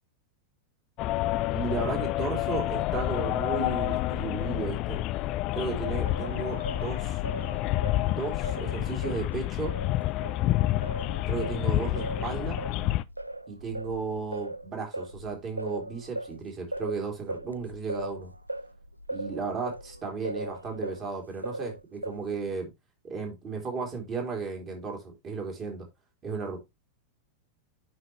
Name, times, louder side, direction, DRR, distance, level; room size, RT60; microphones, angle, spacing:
sound 1, 1.0-13.0, left 16 dB, 40° left, 0.4 m, -29 dB
voice 1, 1.5-5.0 5.5-7.2 8.1-9.7 11.3-12.6 13.5-18.3 19.1-22.7 23.0-25.9 26.2-26.6, right 5 dB, 30° right, 2.9 m, -34 dB
Singing, 6.0-10.4 10.8-21.1 21.4-22.4, right 1 dB, 85° right, 0.3 m, -39 dB
9.6 x 4.9 x 3.0 m
figure-of-eight pair, 90°, 0 cm